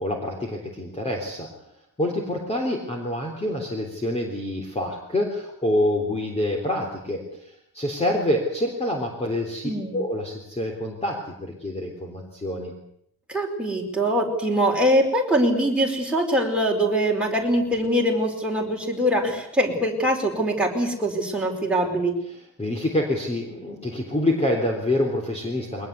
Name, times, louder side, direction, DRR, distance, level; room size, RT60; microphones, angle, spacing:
voice 1, 0.0-1.5 2.0-12.7 22.3-25.9, left 1 dB, 15° left, 1 dB, 3.6 m, -27 dB
voice 2, 9.6-10.0 13.3-22.1, equal, 5° right, -1 dB, 4.9 m, -23 dB
22.5 x 20.0 x 8.3 m, 0.72 s
wide cardioid pair, 165°, 39 cm